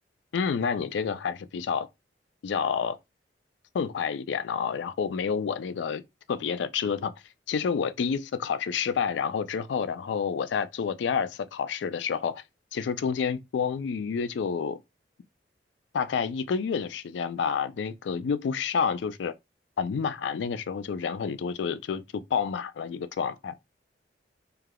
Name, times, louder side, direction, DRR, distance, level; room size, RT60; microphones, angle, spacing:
voice 1, 0.3-1.9 2.4-3.0 3.7-6.0 6.3-7.1 7.5-12.4 12.7-14.8 15.9-19.3 19.8-23.5, left 6 dB, 80° left, 0.3 m, -29 dB
3.3 x 2.3 x 2.2 m
head